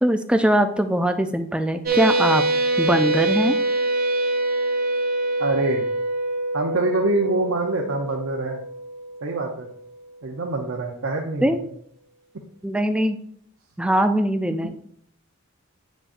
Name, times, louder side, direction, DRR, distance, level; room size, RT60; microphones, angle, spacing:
voice 1, 0.0-2.4 2.8-3.6 11.4-11.6 12.6-13.2 13.8-14.8, equal, 5° right, 7 dB, 0.3 m, -21 dB
sound 1, 1.9-9.9, right 2 dB, 45° right, 0.9 m, -24 dB
voice 2, 5.4-5.8 6.5-8.6 9.2-9.7 10.2-11.6, right 2 dB, 75° right, 1 dB, 0.7 m, -25 dB
8.0 x 6.1 x 2.5 m, 0.65 s
head